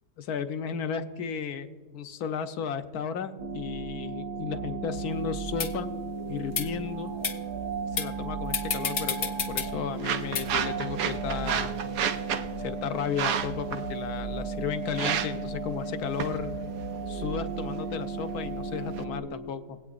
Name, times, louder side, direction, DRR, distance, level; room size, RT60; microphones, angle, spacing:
voice 1, 0.3-5.9 6.3-7.1 7.9-11.8 12.6-16.6 17.1-19.6, left 7 dB, 75° left, 9 dB, 1.2 m, -34 dB
sound 1, 3.4-19.2, right 4 dB, 60° right, 1.9 m, -35 dB
sound 2, 5.0-5.1 5.6-5.7 6.5-6.7 7.2-7.4 8.0-8.1 8.5-9.7 10.4-10.5, left 7 dB, 55° left, 0.7 m, -29 dB
sound 3, 9.1-19.0, right 8 dB, 80° right, 1.2 m, -34 dB
21.0 x 8.5 x 2.4 m, 1.5 s
omnidirectional pair, 1.7 m